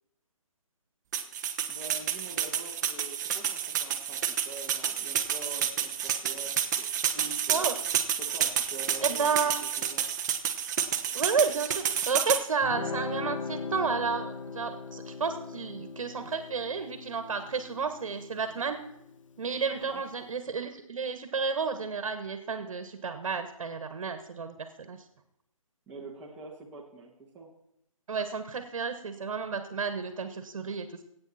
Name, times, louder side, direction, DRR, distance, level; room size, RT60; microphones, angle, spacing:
sound 1, 1.1-12.4, right 8 dB, 30° right, 1.0 m, -30 dB
voice 1, 1.7-7.7 8.2-9.3 9.6-10.1 19.8-20.0 25.9-27.5, right 3 dB, 5° right, -6 dB, 1.6 m, -46 dB
voice 2, 9.0-9.5 11.1-18.8 19.4-25.0 28.1-31.0, right 5 dB, 60° right, 9 dB, 1.5 m, -31 dB
Guitar, 12.6-19.8, left 4 dB, 65° left, 1.2 m, -40 dB
20.0 x 8.9 x 4.3 m, 0.81 s
hypercardioid pair, 155°, 18 cm